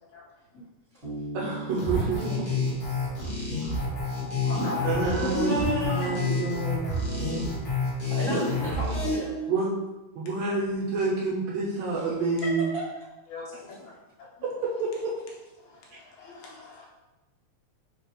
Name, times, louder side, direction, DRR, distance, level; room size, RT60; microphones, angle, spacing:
Bass guitar, 1.0-4.5, right 2 dB, 35° right, 1.1 m, -41 dB
voice 1, 1.3-2.3 4.8-7.6 9.5-9.7 10.2-12.7 14.8-15.1, right 3 dB, 75° right, -3 dB, 1.7 m, -29 dB
sound 1, 1.8-9.2, left 2 dB, 55° left, 1.0 m, -28 dB
voice 2, 1.8-3.0 5.2-6.3 8.0-9.4 11.9-12.0 12.4-12.8, left 1 dB, 40° left, -13 dB, 1.3 m, -34 dB
sound 2, 3.7-7.7, left 4 dB, 90° left, 2.3 m, -39 dB
voice 3, 4.4-5.0 13.3-13.9 15.6-16.9, left 3 dB, 75° left, -3 dB, 2.2 m, -43 dB
4.5 x 3.2 x 2.9 m, 1.1 s
omnidirectional pair, 3.5 m